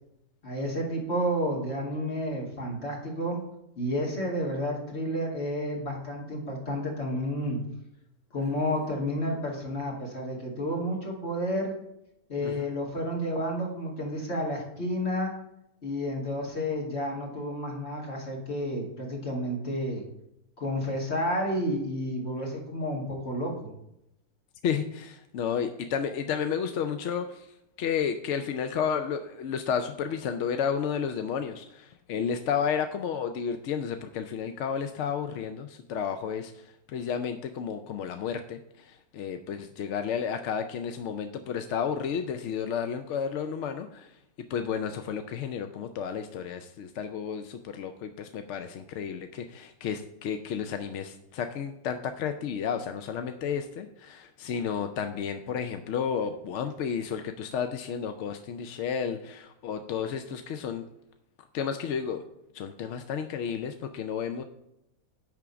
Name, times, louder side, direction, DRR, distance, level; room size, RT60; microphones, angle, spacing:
voice 1, 0.4-3.4 3.8-7.6 8.3-11.7 12.3-15.3 15.8-20.0 20.6-23.7, equal, 45° left, -1 dB, 2.2 m, -31 dB
voice 2, 24.6-27.5 27.8-44.1 44.5-60.8 61.5-62.2 62.5-64.4, left 7 dB, 65° left, 7 dB, 0.7 m, -32 dB
10.5 x 3.6 x 6.8 m, 0.83 s
omnidirectional pair, 1.6 m